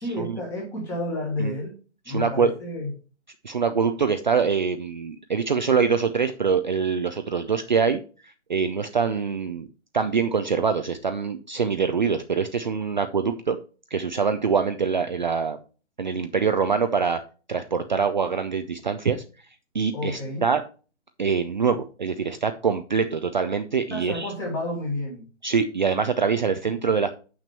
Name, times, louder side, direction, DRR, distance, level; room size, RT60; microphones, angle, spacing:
voice 1, 0.0-1.8 2.0-2.9 19.9-20.5 23.9-25.2, left 1 dB, 5° left, -1 dB, 1.4 m, -30 dB
voice 2, 2.1-2.5 3.4-9.7 9.9-13.6 13.9-15.6 16.0-17.2 17.5-19.2 19.7-20.6 21.2-24.3 25.4-27.1, right 5 dB, 40° right, 8 dB, 0.5 m, -24 dB
7.2 x 6.1 x 4.4 m, 0.37 s
hypercardioid pair, 165°, 36 cm